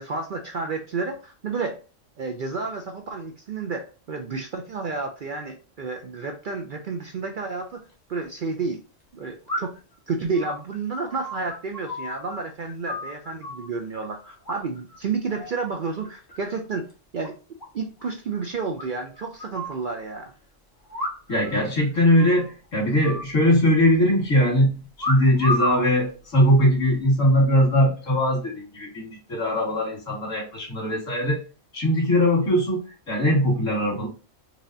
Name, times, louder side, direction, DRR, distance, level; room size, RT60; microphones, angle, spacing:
voice 1, 0.0-1.8 2.2-8.8 9.1-9.7 10.1-16.9 17.1-17.3 17.7-20.3, right 4 dB, 60° right, 4 dB, 0.5 m, -31 dB
sound 1, 7.7-7.8 9.5-9.9 10.3-12.4 12.6-13.7 14.5-15.0 15.3-15.7 16.0-16.6 16.9-17.0 17.2-17.3 17.6-17.7 18.0-18.1 18.8-19.8 20.9-21.5 21.8-21.9 22.2-22.5 23.0-23.9 25.0-25.9 26.6-27.0, left 1 dB, 20° left, 1.0 m, -32 dB
voice 2, 21.3-31.4 31.7-34.1, equal, 85° left, -2 dB, 2.2 m, -21 dB
4.7 x 2.8 x 2.6 m, 0.35 s
omnidirectional pair, 1.3 m